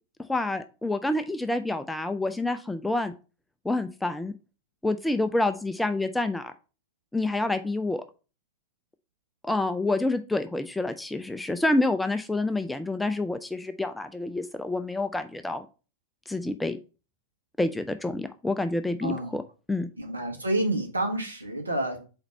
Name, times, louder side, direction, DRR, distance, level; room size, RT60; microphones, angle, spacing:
voice 1, 0.3-3.1 3.6-4.3 4.8-6.5 7.1-8.0 9.4-15.7 16.3-16.8 17.6-19.4 19.7-19.9, left 2 dB, 5° left, 9 dB, 0.4 m, -28 dB
voice 2, 19.0-19.3 20.0-22.0, right 1 dB, 80° right, 2 dB, 1.4 m, -29 dB
4.3 x 4.0 x 5.4 m, 0.34 s
figure-of-eight pair, 90°, 0 cm